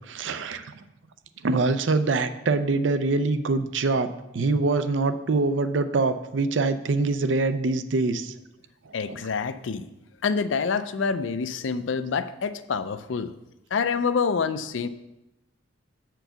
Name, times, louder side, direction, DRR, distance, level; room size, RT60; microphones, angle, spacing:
voice 1, 0.1-0.6 1.4-8.3 9.0-9.2, right 3 dB, 70° right, 11 dB, 0.5 m, -24 dB
voice 2, 8.9-9.9 10.2-13.3 13.7-14.9, left 5 dB, 80° left, 12 dB, 0.5 m, -27 dB
7.9 x 4.6 x 5.8 m, 0.93 s
head